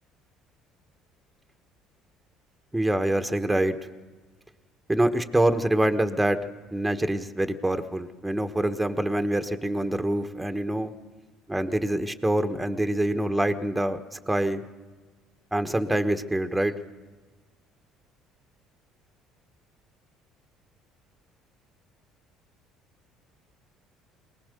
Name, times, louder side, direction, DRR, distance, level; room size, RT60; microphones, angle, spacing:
voice 1, 2.7-3.8 4.9-6.4 6.7-10.9 11.5-14.6 15.5-16.7, right 1 dB, 10° right, 7 dB, 1.3 m, -25 dB
22.0 x 19.0 x 6.8 m, 1.3 s
supercardioid pair, 80°, 0 cm